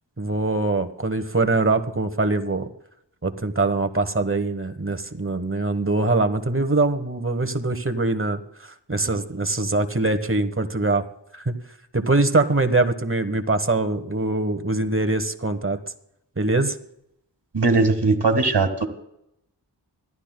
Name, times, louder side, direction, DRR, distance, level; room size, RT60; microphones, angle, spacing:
voice 1, 0.2-2.7 3.2-8.4 8.9-11.0 11.3-11.5 11.9-15.8 16.4-16.8, right 2 dB, 30° right, 9 dB, 1.2 m, -23 dB
voice 2, 17.5-18.9, right 3 dB, 65° right, 6 dB, 1.8 m, -19 dB
25.5 x 12.0 x 2.2 m, 0.78 s
wide cardioid pair, 45°, 44 cm